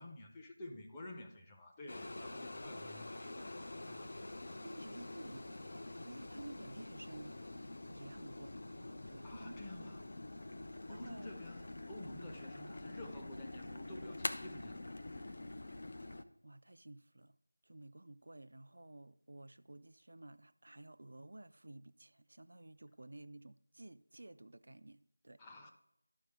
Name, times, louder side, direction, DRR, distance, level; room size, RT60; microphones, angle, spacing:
voice 1, 0.0-4.1 9.2-10.1 10.9-15.0 25.4-25.7, left 1 dB, 10° left, 0.7 m, -51 dB
sound 1, 1.9-16.2, left 2 dB, 50° left, 0.6 m, -46 dB
voice 2, 4.6-7.4 7.9-8.6 9.1-9.9 10.9-11.3 16.4-17.4 17.6-25.4, right 2 dB, 60° right, 0.4 m, -53 dB
12.5 x 4.8 x 3.6 m
figure-of-eight pair, 170°, 0 cm